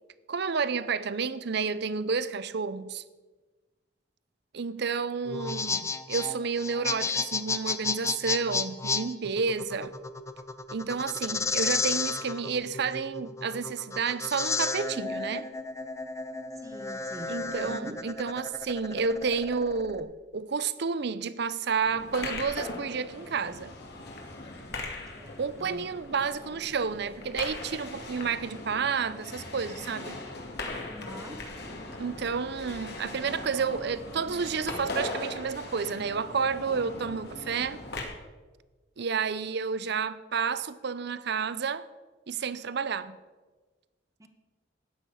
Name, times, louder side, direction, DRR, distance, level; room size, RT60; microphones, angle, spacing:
voice 1, 0.3-3.0 4.5-9.9 10.7-15.5 17.3-23.7 25.4-30.2 32.0-37.8 39.0-41.9 42.3-43.2, right 5 dB, 65° right, 0.6 m, -30 dB
sound 1, 5.2-20.0, left 4 dB, 15° left, 0.6 m, -32 dB
voice 2, 16.5-18.0 25.1-25.3 25.6-25.8 30.8-31.5 44.2-44.3, equal, 20° right, 1.2 m, -44 dB
sound 2, 21.8-38.0, left 2 dB, 60° left, 2.2 m, -40 dB
13.0 x 9.4 x 5.6 m
head